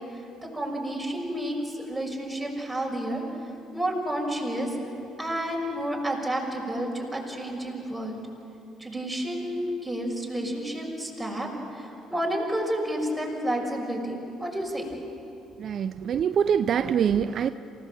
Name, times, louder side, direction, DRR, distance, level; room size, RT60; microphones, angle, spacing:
voice 1, 0.5-3.2 3.7-4.7 5.2-8.2 8.8-11.5 11.7-15.0, right 1 dB, 5° right, -2 dB, 6.3 m, -30 dB
voice 2, 15.6-17.5, right 8 dB, 55° right, 12 dB, 0.5 m, -24 dB
27.5 x 16.0 x 7.7 m, 2.9 s
hypercardioid pair, 50°, 0 cm